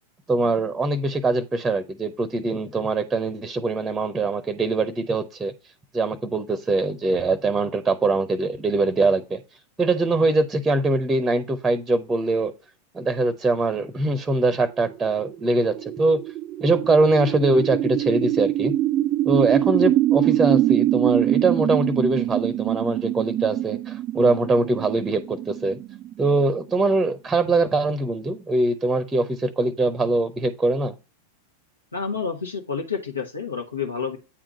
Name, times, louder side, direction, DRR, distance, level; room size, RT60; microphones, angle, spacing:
voice 1, 0.3-5.5 5.9-9.4 9.8-12.5 12.9-16.2 16.6-18.7 19.3-25.8 26.2-30.9, right 2 dB, 10° right, 0.7 m, -22 dB
sound 1, 14.8-26.9, right 13 dB, 30° right, 0.3 m, -24 dB
voice 2, 31.9-34.2, left 5 dB, 80° left, 1.3 m, -29 dB
8.8 x 3.7 x 5.2 m
figure-of-eight pair, 90°, 0 cm